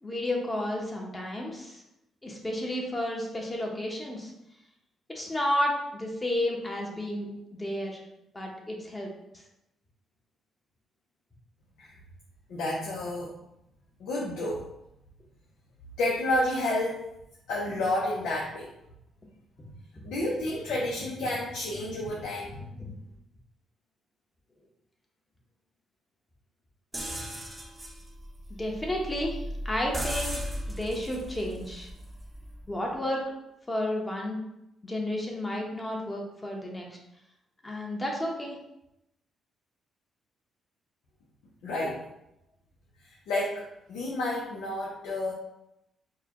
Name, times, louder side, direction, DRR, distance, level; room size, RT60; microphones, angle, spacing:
voice 1, 0.0-1.8 2.2-4.3 5.1-8.0 8.3-9.1 22.8-22.9 27.1-27.2 28.6-30.4 30.7-31.9 32.7-33.2 33.7-34.4 34.8-36.9 37.6-38.6, left 1 dB, 20° left, -1 dB, 1.0 m, -32 dB
voice 2, 12.5-13.3 14.0-14.6 16.0-17.0 17.5-18.7 20.0-22.7 41.6-42.0 43.0-43.6 43.9-45.3, left 1 dB, 85° left, -5 dB, 0.7 m, -30 dB
sound 1, 26.9-32.7, equal, 15° right, 0.7 m, -37 dB
4.6 x 2.3 x 3.0 m, 0.84 s
cardioid pair, 90°, 0 cm